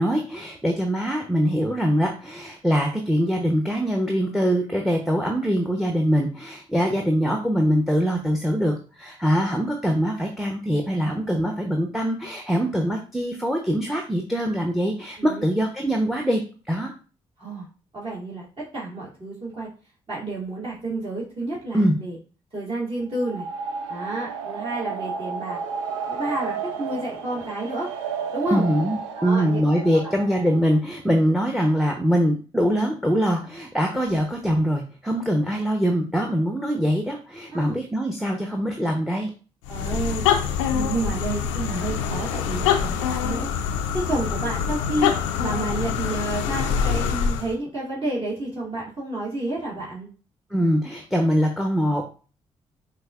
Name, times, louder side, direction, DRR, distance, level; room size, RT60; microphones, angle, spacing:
voice 1, 0.0-16.4 16.7-16.9 21.7-21.9 28.5-39.3 50.5-52.1, equal, ahead, 3 dB, 0.8 m, -23 dB
voice 2, 17.9-19.7 20.1-22.2 22.5-23.5 23.9-25.6 26.1-27.9 28.3-28.7 29.2-29.7 37.5-37.8 39.7-40.3 40.7-43.5 43.9-45.1 45.4-50.1, right 2 dB, 35° right, -8 dB, 2.0 m, -30 dB
sound 1, 23.1-30.8, right 6 dB, 85° right, 0.4 m, -32 dB
sound 2, 39.6-47.5, left 7 dB, 85° left, 0.4 m, -25 dB
6.2 x 2.6 x 2.4 m, 0.36 s
hypercardioid pair, 40°, 15 cm